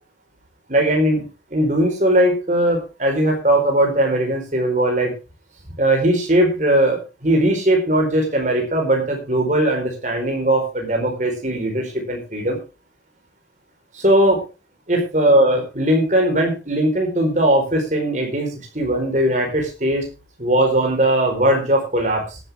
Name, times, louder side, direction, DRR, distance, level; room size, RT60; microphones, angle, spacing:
voice 1, 0.7-1.2 1.5-5.1 5.8-12.6 13.9-14.4 14.9-18.5 18.7-20.0 20.4-22.4, right 1 dB, 40° right, 2 dB, 4.5 m, -19 dB
17.5 x 10.5 x 3.6 m, 0.30 s
head